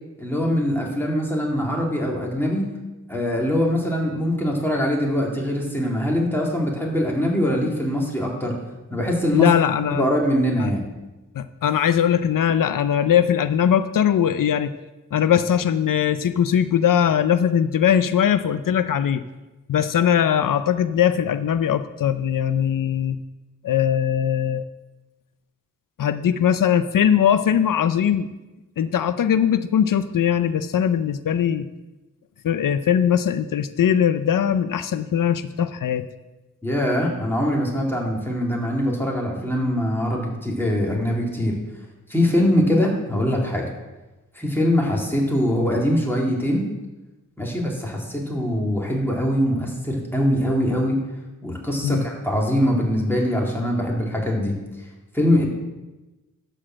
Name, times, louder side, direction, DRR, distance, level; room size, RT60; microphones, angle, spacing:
voice 1, 0.2-2.7 3.1-8.5 8.9-9.5 9.9-10.8 36.6-41.6 42.1-43.7 44.3-46.7 47.4-51.0 51.4-54.6 55.1-55.4, equal, 5° left, -2 dB, 2.4 m, -22 dB
voice 2, 9.3-10.0 10.6-10.7 11.4-14.7 15.1-19.2 19.7-23.2 23.6-24.6 26.0-28.3 28.8-31.7 32.4-36.0 51.8-52.0, left 9 dB, 90° left, 11 dB, 0.5 m, -20 dB
12.0 x 4.5 x 7.4 m, 1.1 s
wide cardioid pair, 95°, 32 cm